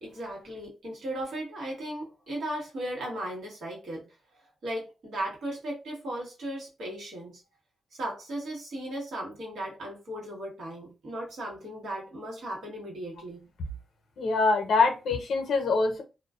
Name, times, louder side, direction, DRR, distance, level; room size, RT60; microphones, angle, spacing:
voice 1, 0.0-4.1 4.6-7.4 7.9-13.5, right 1 dB, 65° right, 1.2 m, -36 dB
voice 2, 14.2-16.0, left 4 dB, 65° left, 0.7 m, -24 dB
2.4 x 2.2 x 2.3 m
wide cardioid pair, 165°, 0 cm